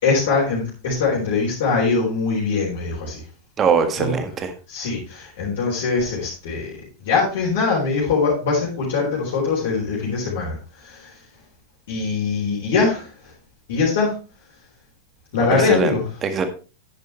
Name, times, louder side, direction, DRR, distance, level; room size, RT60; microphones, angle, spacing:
voice 1, 0.0-3.2 4.0-4.1 4.7-6.7 7.0-11.2 11.9-13.3 13.7-14.2 15.3-16.0, left 4 dB, 55° left, -6 dB, 3.9 m, -22 dB
voice 2, 3.6-4.5 15.6-15.9 16.2-16.4, right 6 dB, 25° right, 8 dB, 1.7 m, -21 dB
10.0 x 9.4 x 3.2 m, 0.34 s
figure-of-eight pair, 90°, 0 cm